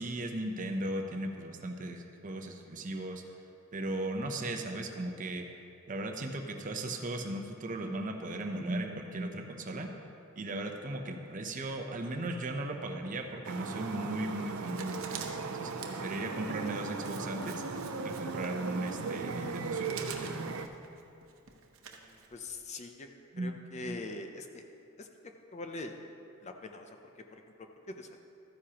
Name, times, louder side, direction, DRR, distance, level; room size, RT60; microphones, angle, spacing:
voice 1, 0.0-3.2 3.7-5.4 5.9-9.9 10.4-17.6 18.0-20.6 23.3-24.0, right 1 dB, 40° right, 4 dB, 0.7 m, -37 dB
sound 1, 13.4-20.7, right 4 dB, 90° right, 0.6 m, -37 dB
Writing, 14.7-22.6, right 6 dB, 70° right, 0.9 m, -48 dB
voice 2, 21.8-23.1 23.4-24.7 25.0-25.1 25.5-25.9 26.4-27.0 27.3-28.2, left 2 dB, 30° left, 5 dB, 0.5 m, -43 dB
13.0 x 9.7 x 2.9 m, 2.6 s
head